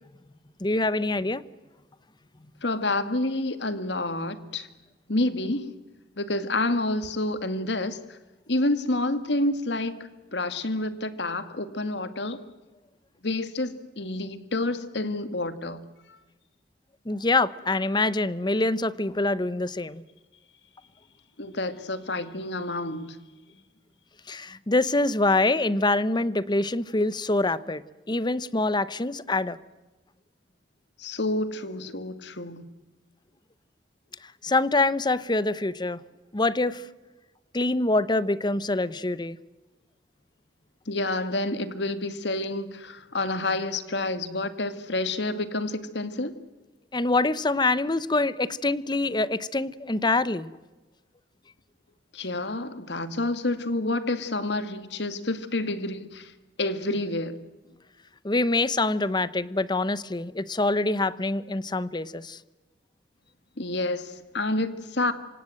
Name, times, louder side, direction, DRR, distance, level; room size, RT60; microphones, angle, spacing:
voice 1, 0.6-1.4 17.0-20.0 24.3-29.6 34.2-36.0 36.3-36.9 37.5-39.4 46.9-50.5 58.2-62.4, left 2 dB, 25° left, 0.9 m, -25 dB
voice 2, 2.6-4.7 5.1-5.7 6.2-8.2 8.5-10.0 10.3-12.4 13.2-15.8 21.4-23.2 31.0-32.6 40.9-46.4 52.1-56.3 56.6-57.4 63.6-65.1, left 2 dB, 70° left, 2.0 m, -29 dB
27.5 x 25.5 x 7.8 m
head